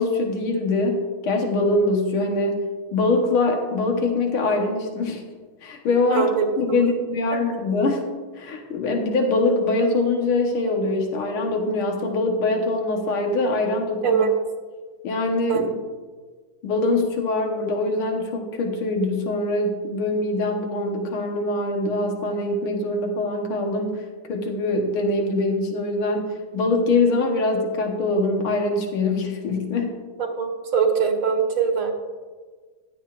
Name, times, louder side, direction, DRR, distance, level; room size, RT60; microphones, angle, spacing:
voice 1, 0.0-2.6 2.9-5.2 5.6-8.1 8.4-14.3 15.0-15.7 16.6-29.9, left 2 dB, 85° left, 2 dB, 2.0 m, -23 dB
voice 2, 6.1-6.9 7.3-7.4 14.0-14.3 15.5-15.6 30.2-31.9, right 6 dB, 90° right, 1 dB, 2.4 m, -22 dB
15.0 x 11.0 x 2.5 m, 1.5 s
omnidirectional pair, 2.3 m